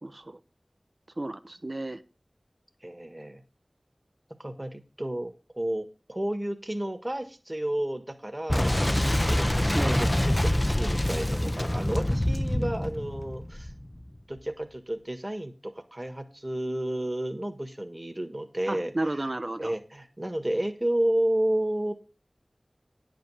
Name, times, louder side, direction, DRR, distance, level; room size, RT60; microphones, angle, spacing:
voice 1, 0.0-0.4 1.2-2.0 9.6-10.0 18.7-19.7, right 1 dB, 45° right, 0.8 m, -33 dB
voice 2, 2.8-3.4 4.4-8.8 9.2-13.7 14.3-19.2 19.6-21.9, right 1 dB, 25° right, 1.5 m, -31 dB
Boom, 8.5-14.1, left 1 dB, 20° left, 0.7 m, -26 dB
10.0 x 5.3 x 6.8 m
wide cardioid pair, 55°, 0 cm